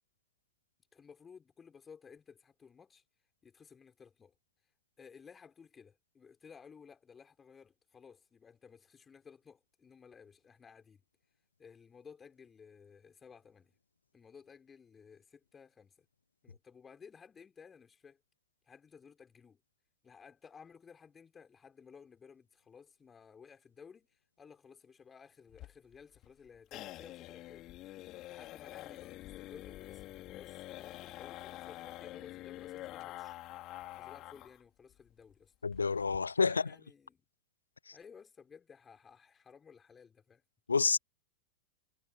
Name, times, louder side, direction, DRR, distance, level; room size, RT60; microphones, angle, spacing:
voice 1, 0.9-3.0 3.4-4.3 5.0-11.0 11.6-13.7 14.1-16.1 16.4-18.2 18.7-19.6 20.0-27.7 28.3-29.2 29.5-33.4 34.0-35.5 36.4-37.2 37.9-40.4, left 6 dB, 20° left, 5.9 m, -56 dB
sound 1, 25.5-34.6 34.9-35.0 35.3-35.4 35.7-36.2, left 16 dB, 35° left, 4.4 m, -47 dB
voice 2, 35.6-36.6 40.7-41.0, left 5 dB, 75° left, 0.5 m, -28 dB
figure-of-eight pair, 90°, 0 cm